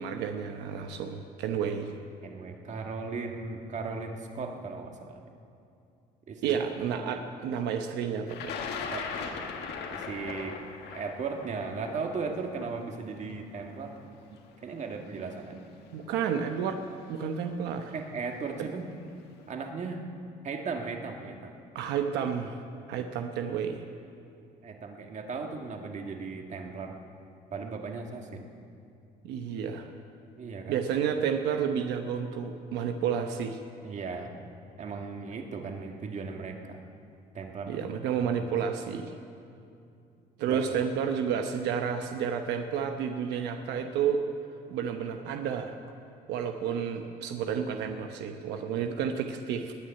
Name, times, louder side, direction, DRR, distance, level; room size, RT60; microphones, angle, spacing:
voice 1, 0.0-1.9 6.4-8.7 15.9-16.8 17.1-17.9 21.7-22.6 22.9-23.8 29.2-29.9 30.7-33.6 37.7-39.1 40.4-44.2 44.7-45.7 46.3-49.7, right 7 dB, 90° right, 5 dB, 1.0 m, -31 dB
voice 2, 2.2-5.2 6.3-6.6 8.9-9.4 9.9-10.6 10.9-13.9 14.3-15.7 17.9-18.9 19.5-20.0 20.4-21.5 22.9-23.0 24.6-27.0 27.5-28.5 30.4-30.8 33.8-34.3 34.8-36.8 37.3-37.9 38.4-38.6 40.5-40.7, right 4 dB, 45° right, 3 dB, 1.8 m, -37 dB
Thunder, 8.3-14.3 15.2-15.3 16.5-16.7 17.0-17.5, left 5 dB, 80° left, 1.8 m, -39 dB
20.0 x 6.6 x 9.7 m, 2.5 s
cardioid pair, 110°, 17 cm